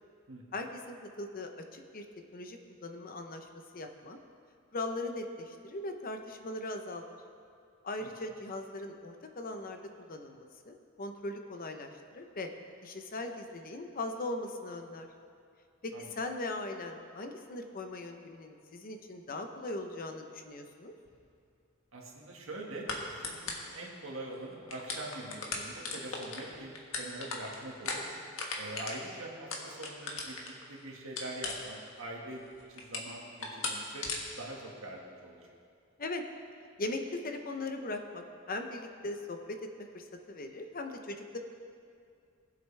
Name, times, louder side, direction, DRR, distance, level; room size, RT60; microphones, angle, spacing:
voice 1, 0.5-2.0 2.3-3.5 3.7-4.2 4.7-7.0 7.8-12.5 12.8-15.1 15.8-20.9 36.0-36.2 36.8-41.4, left 2 dB, 45° left, 5 dB, 0.8 m, -39 dB
sound 1, 21.1-21.2 22.9-23.0 23.2-23.7 24.3-24.4 24.6-30.6 31.2-32.0 32.3-33.1 33.4-33.7 34.0-34.2, left 4 dB, 85° left, 1.5 m, -37 dB
voice 2, 21.9-28.0 28.6-30.4 30.7-32.4 32.7-34.1 34.4-35.6, right 2 dB, 80° right, -1 dB, 1.8 m, -44 dB
19.5 x 7.7 x 3.4 m, 2.3 s
head